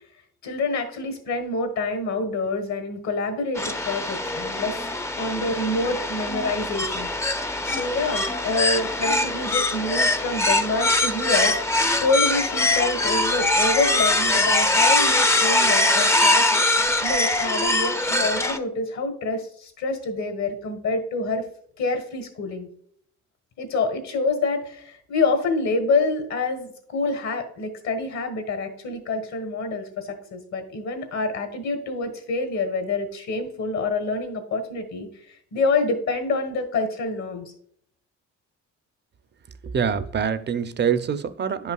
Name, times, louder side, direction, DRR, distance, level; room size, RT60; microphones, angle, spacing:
voice 1, 0.4-4.8 5.1-7.1 7.6-21.4 21.8-22.7 23.6-37.5, left 3 dB, 70° left, 1.5 m, -27 dB
sound 1, 3.5-18.6, left 2 dB, 10° left, 0.5 m, -22 dB
voice 2, 39.6-41.7, right 7 dB, 35° right, 0.6 m, -25 dB
10.0 x 5.5 x 2.3 m
cardioid pair, 90°, 30 cm